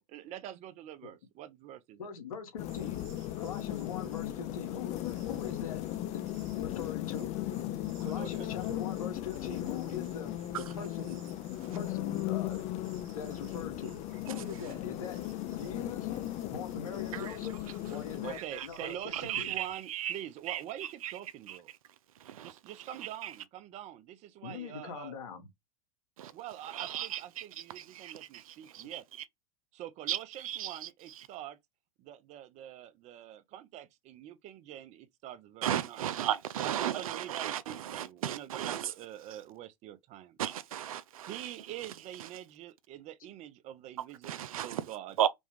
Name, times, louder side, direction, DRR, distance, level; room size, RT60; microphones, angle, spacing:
voice 1, 0.0-2.1 8.0-8.6 18.2-21.7 22.4-25.1 26.3-29.0 29.7-31.6 32.0-36.1 36.6-40.4 41.3-45.2, right 12 dB, 40° right, 0.7 m, -45 dB
voice 2, 2.0-5.8 6.1-6.3 6.6-7.3 8.0-11.2 11.7-14.0 14.3-16.1 16.5-19.5 24.4-25.5, left 6 dB, 85° left, 1.7 m, -42 dB
sound 1, 2.6-18.4, left 14 dB, 40° left, 0.5 m, -37 dB
sound 2, 2.7-19.7, right 7 dB, 70° right, 1.4 m, -58 dB
voice 3, 18.3-20.2 20.5-21.1 21.5-21.6 22.2-22.5 22.8-23.3 26.2-26.3 26.7-29.0 30.1-31.3 35.6-38.9 39.3-39.4 40.4-41.9 42.2-42.3 44.2-44.9 45.2-45.3, right 11 dB, 85° right, 0.5 m, -36 dB
5.3 x 2.4 x 3.2 m
hypercardioid pair, 115°, 18 cm